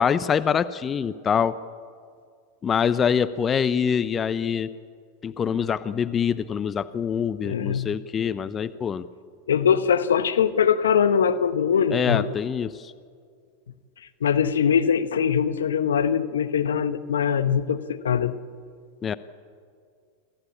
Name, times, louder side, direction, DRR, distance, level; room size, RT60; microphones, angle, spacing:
voice 1, 0.0-1.5 2.6-4.7 5.2-9.0 11.9-12.9 19.0-19.2, left 7 dB, 25° left, 14 dB, 0.8 m, -24 dB
voice 2, 7.4-7.9 9.5-12.3 14.2-18.4, left 7 dB, 80° left, 12 dB, 1.0 m, -22 dB
26.5 x 14.5 x 8.5 m, 2.1 s
hypercardioid pair, 90°, 0 cm